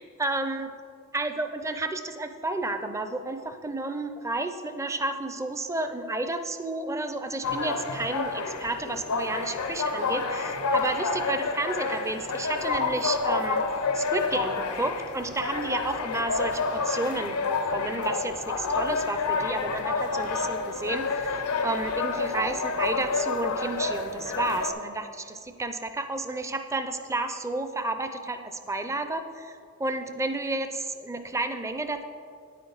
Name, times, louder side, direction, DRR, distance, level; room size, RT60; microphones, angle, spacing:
voice 1, 0.2-0.7 1.1-13.6 13.9-17.4 17.6-32.0, right 2 dB, 15° right, 8 dB, 0.4 m, -31 dB
sound 1, 7.4-24.7, left 4 dB, 90° left, 0.8 m, -29 dB
9.5 x 8.8 x 3.9 m, 2.3 s
head